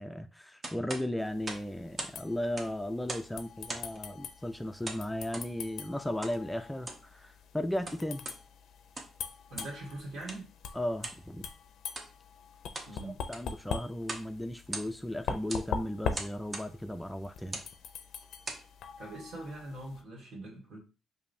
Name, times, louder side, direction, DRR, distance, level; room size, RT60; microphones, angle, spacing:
voice 1, 0.0-8.2 10.7-11.5 13.0-17.6, left 1 dB, 5° left, 0.4 m, -36 dB
sound 1, 0.6-2.2 2.5-3.3 3.7-4.0 4.8-5.5 6.2-6.4 6.7-7.1 7.7-8.4 8.8-9.2 9.5-9.8 10.3-10.4 11.0-11.2 11.9-12.1 12.5-12.9 13.2-13.6 14.0-14.3 14.6-15.1 15.5-15.7 16.1-16.7 17.4-17.7 18.2-18.7, right 2 dB, 35° right, 0.9 m, -41 dB
sound 2, 1.2-20.0, left 6 dB, 75° left, 0.4 m, -43 dB
voice 2, 9.5-10.5 12.9-13.2 19.0-20.8, right 2 dB, 70° right, 1.8 m, -42 dB
5.0 x 2.7 x 2.7 m
cardioid pair, 90°, 0 cm